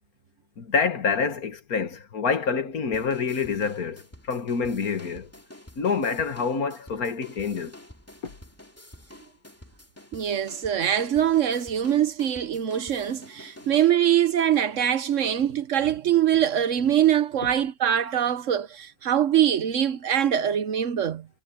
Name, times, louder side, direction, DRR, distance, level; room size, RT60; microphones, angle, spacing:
voice 1, 0.6-5.3 5.8-7.8 8.2-8.3, left 5 dB, 75° left, 2.0 m, -27 dB
sound 1, 2.9-13.9, left 1 dB, 10° left, 2.3 m, -49 dB
voice 2, 10.1-21.3, right 10 dB, 60° right, 1.1 m, -23 dB
omnidirectional pair, 1.6 m